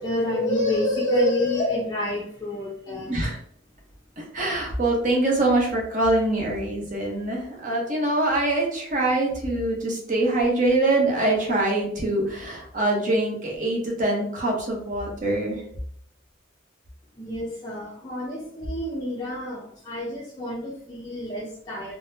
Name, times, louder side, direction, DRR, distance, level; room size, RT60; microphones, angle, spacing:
voice 1, 0.0-3.2 17.2-21.9, left 1 dB, 20° left, -6 dB, 0.5 m, -27 dB
voice 2, 2.9-3.4 4.2-15.6, right 2 dB, 40° right, -1 dB, 0.9 m, -24 dB
3.8 x 2.1 x 2.7 m, 0.65 s
head